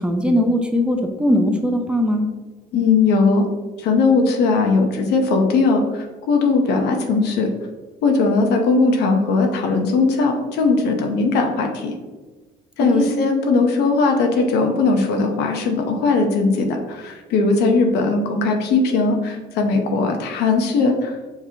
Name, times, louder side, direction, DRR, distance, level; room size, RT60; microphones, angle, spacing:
voice 1, 0.0-2.3 12.8-13.1, equal, 5° right, 3 dB, 0.5 m, -20 dB
voice 2, 2.7-3.4 3.8-7.5 8.0-11.9 12.8-21.2, left 3 dB, 80° left, 3 dB, 0.7 m, -19 dB
4.8 x 3.0 x 2.7 m, 1.3 s
cardioid pair, 110°, 17 cm